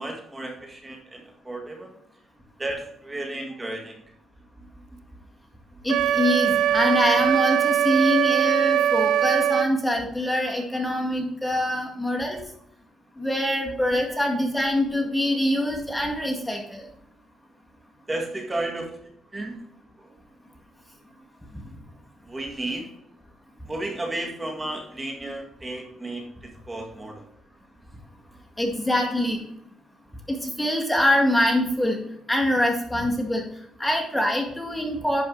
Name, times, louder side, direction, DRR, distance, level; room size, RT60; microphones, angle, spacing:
voice 1, 0.0-1.9 2.6-4.0 4.6-5.0 5.7-5.9 18.1-19.0 19.3-19.6 20.0-20.1 22.3-22.9 23.6-27.3, right 2 dB, 20° right, 1 dB, 1.9 m, -33 dB
voice 2, 5.8-12.4 13.2-16.8 28.6-29.4 30.3-32.0 32.3-33.4 33.8-35.2, left 1 dB, 5° left, 0 dB, 2.0 m, -24 dB
Wind instrument woodwind instrument, 5.9-9.7, right 10 dB, 80° right, 0.5 m, -21 dB
11.0 x 5.1 x 3.9 m, 0.75 s
cardioid pair, 90°, 0 cm